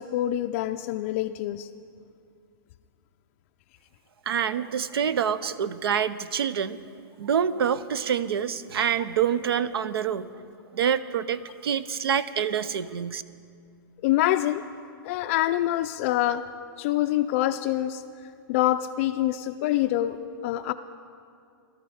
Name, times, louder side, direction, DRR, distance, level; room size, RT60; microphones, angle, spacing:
voice 1, 0.0-1.7 14.0-14.6 15.0-16.4 16.8-18.0 18.5-20.2 20.4-20.7, left 14 dB, 35° left, 8 dB, 0.4 m, -25 dB
voice 2, 4.3-6.8 7.2-10.3 10.7-13.2, right 8 dB, 85° right, 16 dB, 0.7 m, -26 dB
17.0 x 13.5 x 5.6 m, 2.3 s
hypercardioid pair, 160°, 12 cm